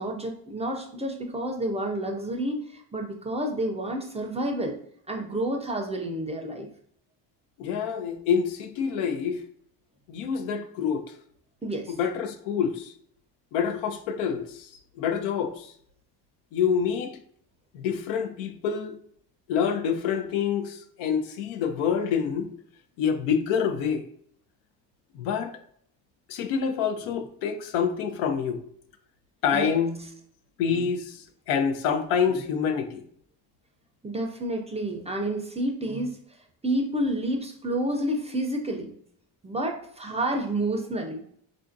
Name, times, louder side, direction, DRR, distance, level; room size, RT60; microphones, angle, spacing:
voice 1, 0.0-4.8 5.1-6.7 11.6-12.0 29.5-29.8 30.7-30.8 32.3-32.4 34.0-38.9 39.4-41.2, right 1 dB, 15° right, 0.4 m, -30 dB
voice 2, 7.6-9.4 10.1-11.0 11.9-12.9 13.5-14.7 15.0-15.7 16.5-17.2 17.7-19.0 19.5-22.5 23.0-24.0 25.1-25.5 26.3-28.6 29.4-30.0 30.6-33.0, left 7 dB, 90° left, 0.6 m, -27 dB
3.6 x 2.5 x 2.5 m
supercardioid pair, 90°, 46 cm